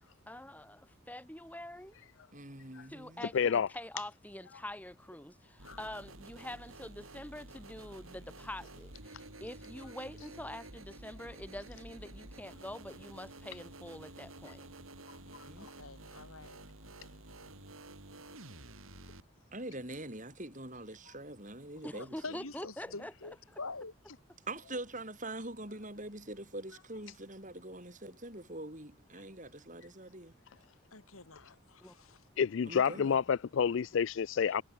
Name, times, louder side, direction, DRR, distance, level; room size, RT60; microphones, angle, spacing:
voice 1, 0.3-1.9 2.9-14.6 21.8-23.4 31.8-31.9, left 1 dB, 5° left, 2.1 m, -45 dB
voice 2, 2.3-3.3 15.2-15.7 19.5-22.4 24.5-30.3 32.6-33.2, right 1 dB, 35° right, 7.0 m, -44 dB
voice 3, 3.3-3.7 5.7-5.8 32.4-34.6, left 7 dB, 60° left, 0.4 m, -29 dB
sound 1, 5.6-19.2, right 2 dB, 75° right, 6.6 m, -51 dB
voice 4, 15.6-16.6 21.9-23.9 30.9-32.2, left 3 dB, 85° left, 3.8 m, -46 dB
head